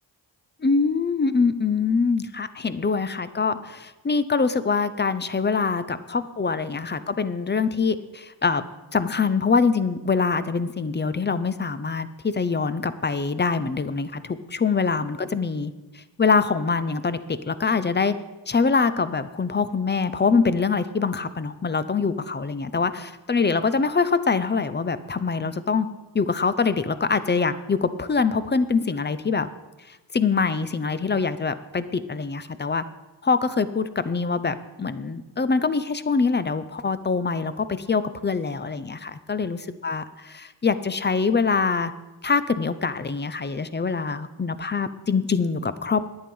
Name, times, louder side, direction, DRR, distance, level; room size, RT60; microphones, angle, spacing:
voice 1, 0.6-8.6 8.9-18.1 18.5-25.9 26.1-29.5 29.9-32.8 33.2-41.9 42.2-46.0, left 4 dB, 25° left, 13 dB, 0.5 m, -24 dB
10.5 x 8.6 x 5.4 m, 1.1 s
wide cardioid pair, 100°, 46 cm